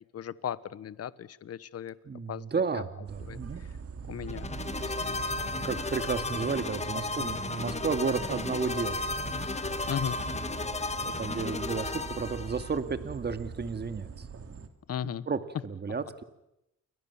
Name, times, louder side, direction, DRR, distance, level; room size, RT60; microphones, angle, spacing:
voice 1, 0.1-1.9 2.3-2.5 2.7-2.8 3.2-3.4 4.1-4.5 5.0-5.2 7.2-7.4 9.8-10.2 14.9-15.3, left 9 dB, 55° left, 18 dB, 1.1 m, -36 dB
voice 2, 2.1-3.6 4.1-4.2 5.6-9.0 9.3-9.5 10.6-10.8 11.0-14.3 15.3-16.2, right 5 dB, 35° right, 10 dB, 2.3 m, -33 dB
sound 1, 3.1-14.7, right 5 dB, 50° right, 3.0 m, -42 dB
sound 2, 4.3-12.8, left 3 dB, 20° left, 1.8 m, -34 dB
29.5 x 22.5 x 7.3 m, 0.89 s
cardioid pair, 90°, 30 cm